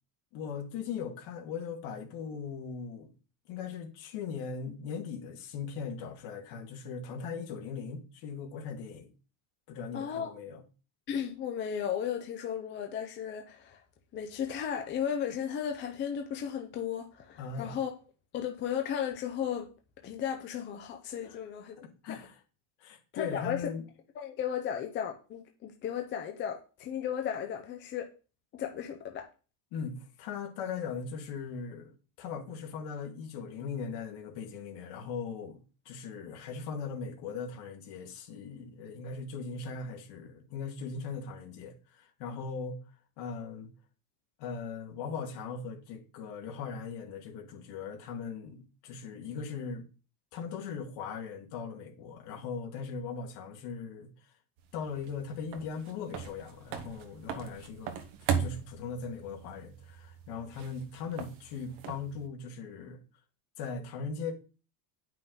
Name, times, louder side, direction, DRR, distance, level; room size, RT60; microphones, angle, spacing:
voice 1, 0.3-3.1 3.5-9.1 9.7-10.6 17.4-17.8 21.2-21.4 21.8-22.4 22.8-23.8 29.7-42.8 43.2-43.7 44.4-49.8 50.3-54.1 54.7-57.9 58.4-63.0 63.6-64.3, left 5 dB, 55° left, 2.0 m, -39 dB
voice 2, 9.9-10.3 11.1-13.8 14.1-17.9 18.3-19.7 20.0-21.8 22.1-22.2 23.1-23.6 24.2-28.1 28.5-29.3, left 8 dB, 25° left, 0.6 m, -35 dB
sound 1, 54.6-62.3, right 7 dB, 50° right, 1.2 m, -39 dB
9.5 x 5.8 x 3.9 m
cardioid pair, 175°, 49 cm